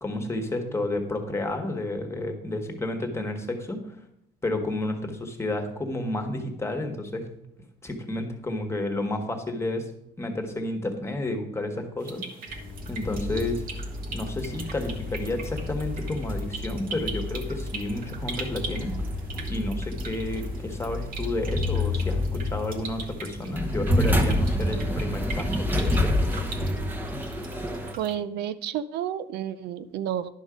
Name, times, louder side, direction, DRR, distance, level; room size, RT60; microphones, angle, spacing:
voice 1, 0.0-4.0 4.4-7.3 7.8-9.9 10.2-12.2 12.9-13.6 14.1-19.1 19.5-26.5, left 2 dB, 15° left, 5 dB, 1.4 m, -31 dB
sound 1, 12.0-28.1, right 4 dB, 55° right, 1.3 m, -41 dB
sound 2, 12.5-27.9, left 1 dB, 10° right, 1.1 m, -29 dB
voice 2, 28.0-30.3, right 10 dB, 75° right, 13 dB, 0.5 m, -31 dB
11.0 x 5.4 x 5.0 m, 0.78 s
cardioid pair, 110°, 17 cm